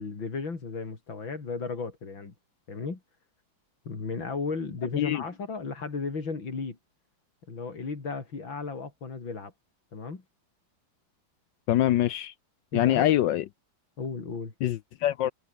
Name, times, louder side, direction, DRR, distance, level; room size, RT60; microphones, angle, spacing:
voice 1, 0.0-2.3 2.7-3.0 3.9-6.8 7.5-9.5 9.9-10.2 12.7-13.1 14.0-14.5, left 4 dB, 90° left, 4.5 m, -34 dB
voice 2, 11.7-12.3 12.7-13.4 14.6-15.3, left 12 dB, 75° left, 1.4 m, -24 dB
omnidirectional pair, 2.1 m